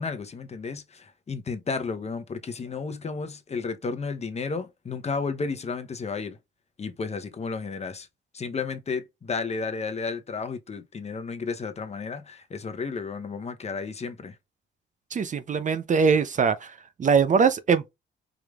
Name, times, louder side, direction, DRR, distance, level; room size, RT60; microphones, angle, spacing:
voice 1, 0.0-6.4 6.8-8.1 8.3-14.3, left 4 dB, 35° left, 0.8 m, -32 dB
voice 2, 15.1-17.9, right 5 dB, 40° right, 0.6 m, -22 dB
4.9 x 3.1 x 2.4 m
cardioid pair, 90°, 20 cm